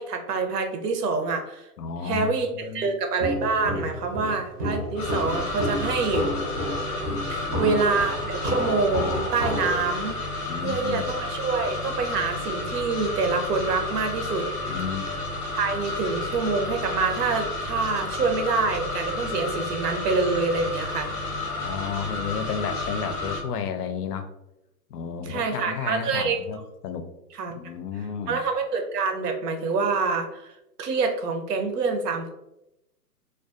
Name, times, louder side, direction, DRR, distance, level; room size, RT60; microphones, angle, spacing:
voice 1, 0.0-1.7 2.0-6.3 7.3-10.2 10.6-14.5 15.6-21.1 25.3-26.4 27.4-27.5 28.3-30.5 30.8-32.3, right 4 dB, 80° right, 5 dB, 0.7 m, -26 dB
voice 2, 1.8-3.0 7.5-7.8 10.5-11.1 14.7-15.0 21.4-24.3 24.9-27.1 27.6-28.4, left 7 dB, 75° left, 8 dB, 0.5 m, -32 dB
Walk footsteps, 3.2-9.9, equal, 25° right, 0.5 m, -30 dB
sound 1, 5.0-23.4, left 2 dB, 20° left, 0.6 m, -31 dB
2.3 x 2.3 x 2.4 m, 0.88 s
hypercardioid pair, 145°, 47 cm